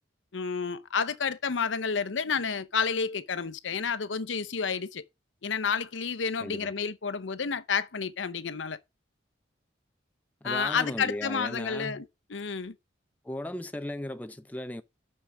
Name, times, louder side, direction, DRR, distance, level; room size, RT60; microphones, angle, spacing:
voice 1, 0.3-5.0 5.4-8.8 10.4-12.0 12.3-12.7, left 5 dB, 85° left, 0.8 m, -30 dB
voice 2, 6.4-6.7 10.4-12.0 13.2-14.8, left 1 dB, 10° left, 0.4 m, -36 dB
6.5 x 5.9 x 6.1 m
head